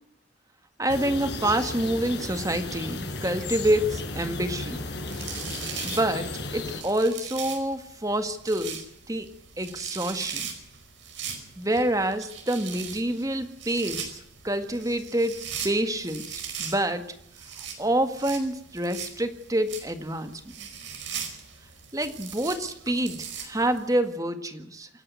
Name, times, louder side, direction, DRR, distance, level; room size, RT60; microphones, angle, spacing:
voice 1, 0.8-4.8 5.8-9.3 9.6-10.4 11.6-17.1 17.8-20.7 21.9-24.9, right 1 dB, 20° right, 9 dB, 1.8 m, -27 dB
sound 1, 0.9-6.8, left 2 dB, 60° left, 5.1 m, -34 dB
sound 2, 4.7-23.9, right 7 dB, 75° right, 5.2 m, -40 dB
27.5 x 11.0 x 9.5 m, 0.72 s
head